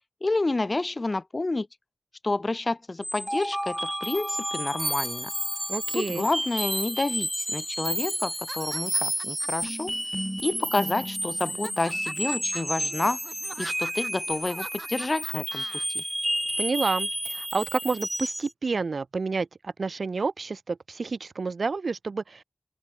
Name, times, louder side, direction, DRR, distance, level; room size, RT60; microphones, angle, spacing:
voice 1, 0.2-1.7 2.2-5.3 5.9-9.9 10.4-13.2 13.6-16.0, left 2 dB, 35° left, 2.2 m, -29 dB
sound 1, 3.0-18.5, equal, 5° right, 3.7 m, -31 dB
voice 2, 5.7-6.3 16.6-22.4, right 4 dB, 65° right, 1.3 m, -29 dB
sound 2, 8.3-9.7 10.4-11.0 11.4-15.8, right 2 dB, 35° right, 3.8 m, -43 dB
open air
wide cardioid pair, 85°, 0 cm